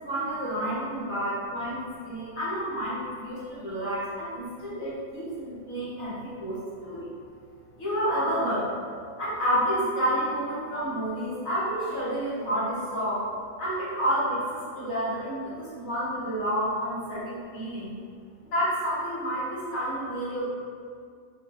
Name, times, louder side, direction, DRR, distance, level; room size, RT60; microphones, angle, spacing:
voice 1, 0.0-7.1 7.8-8.7 9.2-13.3 13.6-17.9 18.4-20.5, equal, 70° left, -10 dB, 1.7 m, -29 dB
4.9 x 2.7 x 2.5 m, 2.1 s
omnidirectional pair, 1.5 m